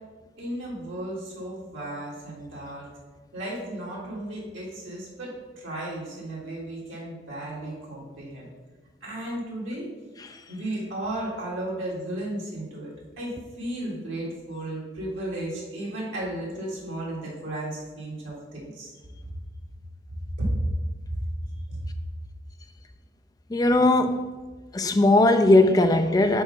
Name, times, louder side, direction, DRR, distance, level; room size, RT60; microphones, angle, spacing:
voice 1, 0.4-2.9 3.3-8.5 9.0-9.9 10.5-18.9 20.4-20.5 21.1-21.2 21.7-21.8, right 1 dB, 85° right, -5 dB, 1.7 m, -34 dB
voice 2, 23.5-24.3 24.7-26.4, left 2 dB, 20° left, 7 dB, 0.4 m, -19 dB
4.7 x 4.2 x 5.3 m, 1.3 s
head